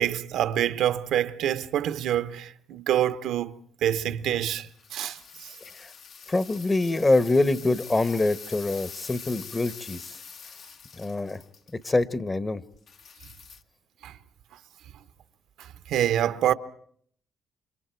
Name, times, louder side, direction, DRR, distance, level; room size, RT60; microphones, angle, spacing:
voice 1, 0.0-5.5 14.0-14.2 15.6-16.5, right 11 dB, 80° right, 0.9 m, -27 dB
sound 1, 4.7-11.8 12.9-13.6, left 6 dB, 65° left, 1.6 m, -45 dB
voice 2, 6.3-10.2 11.0-11.4 11.7-12.6, left 2 dB, 25° left, 1.2 m, -25 dB
29.5 x 26.0 x 4.6 m
cardioid pair, 90°, 0 cm